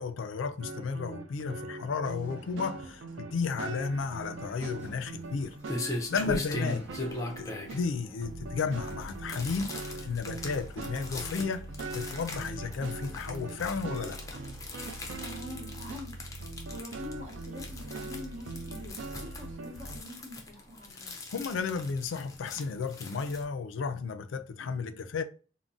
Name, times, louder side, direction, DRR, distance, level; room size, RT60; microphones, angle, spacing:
voice 1, 0.0-5.6 6.1-6.8 7.4-9.8 10.0-11.7 11.9-14.2 21.3-25.2, left 5 dB, 80° left, 0.4 m, -33 dB
sound 1, 0.6-7.9 8.2-20.0, right 3 dB, 75° right, 0.4 m, -41 dB
sound 2, 2.2-16.4, equal, 10° right, 1.0 m, -57 dB
sound 3, 4.9-23.4, left 2 dB, 15° left, 0.4 m, -40 dB
voice 2, 15.2-21.2, left 2 dB, 45° right, 1.1 m, -45 dB
3.7 x 2.0 x 2.3 m
head